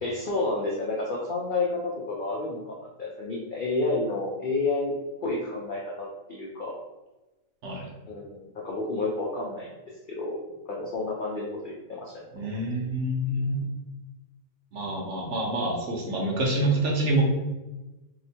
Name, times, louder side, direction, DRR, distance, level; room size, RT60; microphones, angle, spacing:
voice 1, 0.0-4.9 5.2-6.7 8.1-9.7 10.1-10.4 10.7-12.6, left 3 dB, 65° left, -3 dB, 0.5 m, -30 dB
voice 2, 12.3-13.7 14.7-17.2, right 1 dB, 60° right, -2 dB, 1.0 m, -27 dB
2.9 x 2.1 x 4.1 m, 1.1 s
omnidirectional pair, 1.5 m